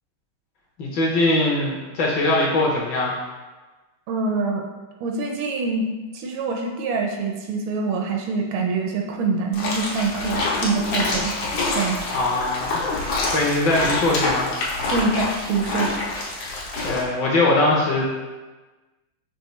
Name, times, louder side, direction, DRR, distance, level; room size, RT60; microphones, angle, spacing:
voice 1, 0.8-3.1 12.1-12.8 13.3-14.5 16.8-18.1, left 2 dB, 65° left, -3 dB, 1.2 m, -21 dB
voice 2, 4.1-4.6 5.0-5.9 6.1-11.3 11.7-12.0 14.9-16.0, right 4 dB, 75° right, 2 dB, 1.3 m, -25 dB
sound 1, 9.5-17.0, left 2 dB, 85° left, 1.9 m, -26 dB
5.6 x 3.1 x 3.0 m, 1.2 s
omnidirectional pair, 2.4 m